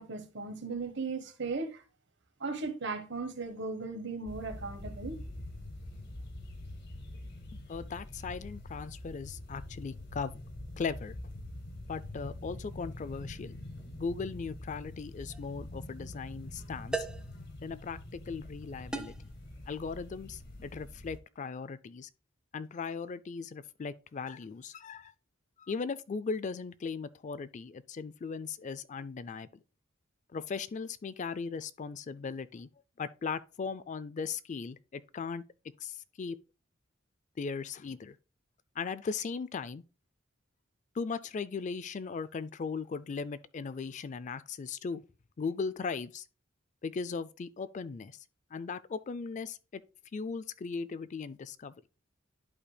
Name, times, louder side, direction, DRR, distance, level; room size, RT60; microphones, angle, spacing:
voice 1, 0.0-1.8 2.4-5.2, right 4 dB, 60° right, 1.3 m, -37 dB
sound 1, 4.3-21.2, left 1 dB, 60° left, 2.1 m, -45 dB
voice 2, 7.5-10.4 10.8-11.2 11.9-13.6 14.0-17.1 17.6-19.3 19.7-22.1 22.5-25.1 25.6-29.6 30.3-32.7 33.0-35.4 35.8-36.4 37.4-38.2 38.8-39.8 40.9-45.0 45.4-46.3 46.8-48.2 48.5-49.8 50.1-51.8, left 5 dB, 40° left, 0.4 m, -38 dB
sound 2, 15.3-15.5 16.9-17.4 18.9-19.3, right 2 dB, 5° right, 0.6 m, -37 dB
11.5 x 5.1 x 2.2 m
head